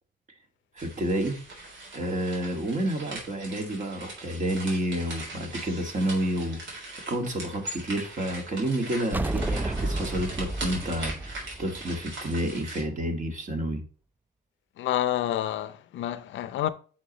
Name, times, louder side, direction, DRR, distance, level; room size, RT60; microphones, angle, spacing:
voice 1, 0.8-1.4 1.9-13.8, right 1 dB, 40° right, 2.0 m, -30 dB
sound 1, 0.8-12.8, right 2 dB, 70° right, 3.6 m, -40 dB
sound 2, 9.1-12.6, right 2 dB, 10° right, 0.4 m, -31 dB
voice 2, 14.8-16.7, left 12 dB, 75° left, 0.7 m, -28 dB
8.6 x 5.9 x 3.0 m
cardioid pair, 90°, 20 cm